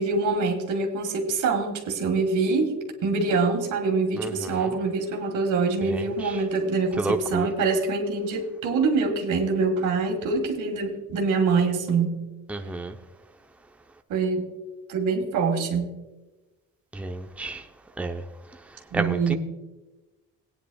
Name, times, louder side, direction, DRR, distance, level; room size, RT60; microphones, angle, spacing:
voice 1, 0.0-2.8 3.0-12.2 14.1-14.5 14.9-15.9 18.9-19.4, right 4 dB, 85° right, 1.9 m, -25 dB
voice 2, 4.2-4.7 5.9-6.0 7.0-7.5 12.5-13.0 16.9-17.6 18.0-18.2 18.9-19.3, right 2 dB, 5° right, 0.7 m, -30 dB
18.0 x 9.6 x 2.3 m
cardioid pair, 90°, 30 cm